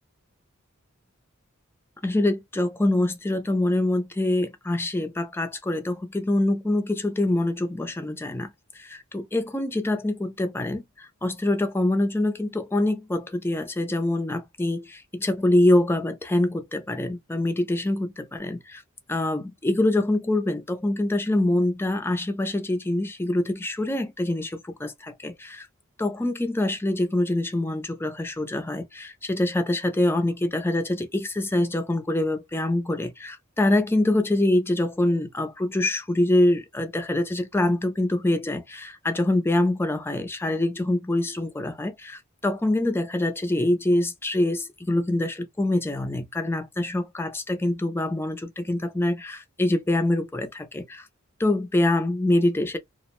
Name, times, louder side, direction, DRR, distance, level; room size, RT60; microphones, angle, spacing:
voice 1, 2.0-18.8 19.1-25.7 26.0-51.1 51.4-52.8, left 1 dB, 10° left, 0.4 m, -25 dB
2.4 x 2.1 x 3.0 m
head